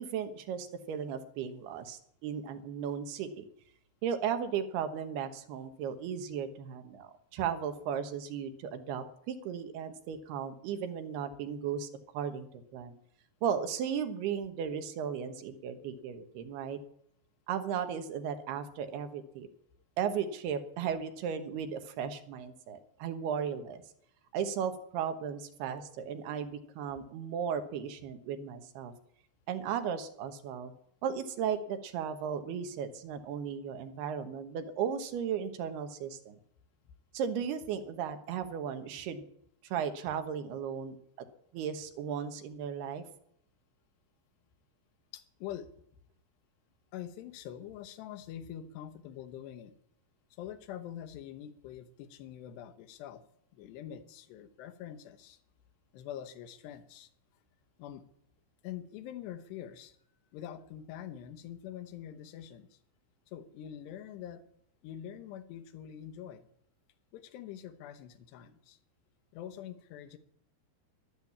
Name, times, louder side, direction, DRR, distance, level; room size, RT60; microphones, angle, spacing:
voice 1, 0.0-3.5 4.0-11.9 12.1-12.9 13.4-16.8 17.5-19.5 20.0-23.8 24.3-28.9 29.5-30.7 31.0-36.4 37.1-39.3 39.6-41.0 41.5-43.0, right 8 dB, 75° right, 8 dB, 3.2 m, -35 dB
voice 2, 45.1-45.7 46.9-49.7 50.4-53.2 53.5-55.4 55.9-57.1 57.8-58.0 58.6-60.0 60.3-62.8 63.3-64.4 64.8-66.5 67.1-68.8 69.3-70.2, left 10 dB, 85° left, 10 dB, 3.2 m, -45 dB
12.5 x 12.0 x 8.5 m, 0.70 s
omnidirectional pair, 4.8 m